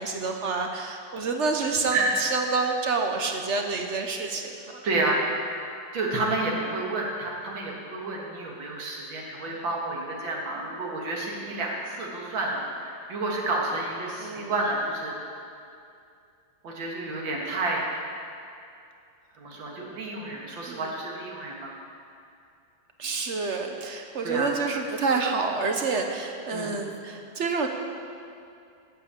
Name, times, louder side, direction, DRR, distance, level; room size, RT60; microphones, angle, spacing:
voice 1, 0.0-4.8 14.2-14.5 20.7-20.9 23.0-27.7, right 4 dB, 50° right, 4 dB, 0.9 m, -28 dB
voice 2, 4.8-5.2 5.9-15.1 16.6-17.8 19.4-21.7 24.2-24.5 26.5-26.8, right 2 dB, 85° right, -2 dB, 2.5 m, -30 dB
9.5 x 8.2 x 8.2 m, 2.5 s
omnidirectional pair, 2.0 m